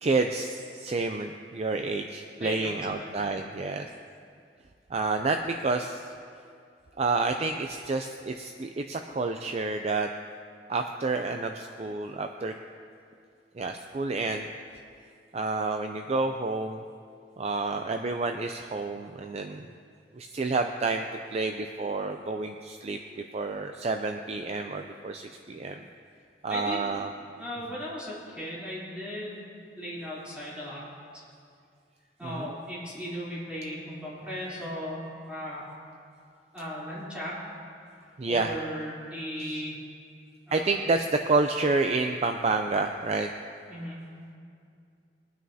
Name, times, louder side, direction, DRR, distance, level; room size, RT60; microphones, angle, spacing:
voice 1, 0.0-3.9 4.9-6.1 7.0-10.1 10.7-12.5 13.6-14.5 15.3-16.8 17.4-19.7 20.1-21.0 21.3-23.0 23.3-25.8 26.4-27.1 32.2-32.5 38.2-38.5 40.5-43.3, right 3 dB, 35° right, 5 dB, 0.4 m, -29 dB
voice 2, 2.4-3.1 26.5-26.9 27.4-29.4 29.8-30.8 31.1-31.2 32.2-35.6 36.5-37.6 38.0-39.9 40.5-40.9 43.7-44.0, equal, 5° right, -9 dB, 3.4 m, -37 dB
22.0 x 9.3 x 2.8 m, 2.3 s
head